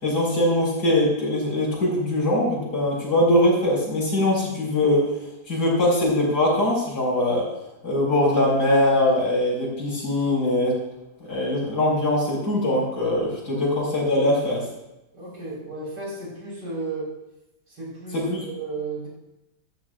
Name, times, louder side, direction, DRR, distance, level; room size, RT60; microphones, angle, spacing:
voice 1, 0.0-5.1 5.5-7.4 7.8-10.8 11.3-14.6 18.1-18.4, left 1 dB, 80° left, -4 dB, 5.7 m, -22 dB
voice 2, 15.1-17.1 17.7-18.2 18.4-19.1, right 3 dB, 85° right, -5 dB, 5.2 m, -33 dB
14.5 x 13.5 x 2.5 m, 0.93 s
omnidirectional pair, 1.8 m